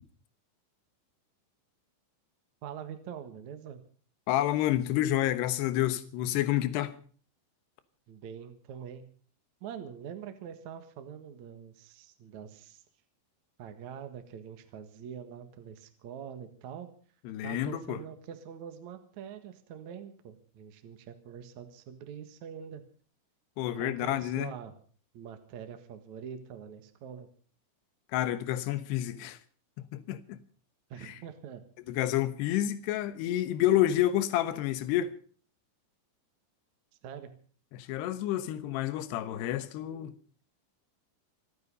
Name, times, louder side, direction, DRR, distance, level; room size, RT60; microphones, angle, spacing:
voice 1, 2.6-3.8 8.1-9.1 9.6-12.8 13.6-16.9 17.4-22.8 23.8-24.7 25.1-27.3 30.9-31.6 37.0-37.3, right 8 dB, 60° right, 2.0 m, -44 dB
voice 2, 4.3-7.0 17.3-18.0 23.6-24.5 28.1-29.4 29.8-30.4 31.0-31.1 31.9-35.1 37.7-40.1, left 13 dB, 70° left, 3.0 m, -29 dB
27.0 x 9.5 x 5.4 m
omnidirectional pair, 5.5 m